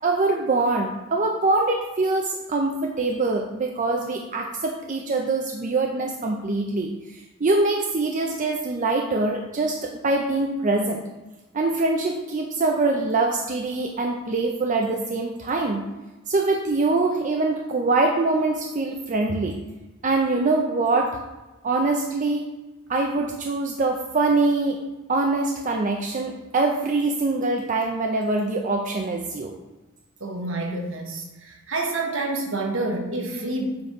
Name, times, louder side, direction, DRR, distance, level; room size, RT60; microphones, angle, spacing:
voice 1, 0.0-11.0 11.5-15.8 16.3-19.5 20.0-21.2 21.6-22.4 22.9-24.8 25.1-29.5, right 3 dB, 35° right, 1 dB, 0.5 m, -24 dB
voice 2, 30.2-33.8, right 2 dB, 65° right, 1 dB, 1.2 m, -28 dB
7.8 x 4.1 x 4.7 m, 1.1 s
head